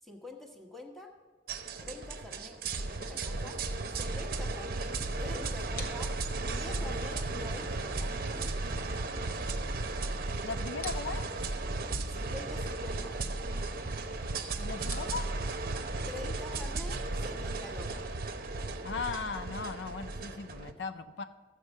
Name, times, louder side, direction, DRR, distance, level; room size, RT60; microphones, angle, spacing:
voice 1, 0.0-1.1 1.8-3.6 4.0-8.2 12.1-13.2 16.1-18.1, left 2 dB, ahead, 1 dB, 1.2 m, -46 dB
sound 1, 1.5-20.7, right 3 dB, 55° right, 0.8 m, -35 dB
sound 2, 4.2-19.0, left 2 dB, 50° left, 1.2 m, -53 dB
voice 2, 10.4-11.2 14.6-15.3 18.8-21.2, left 5 dB, 70° left, 11 dB, 0.4 m, -37 dB
14.0 x 7.3 x 5.3 m, 1.4 s
head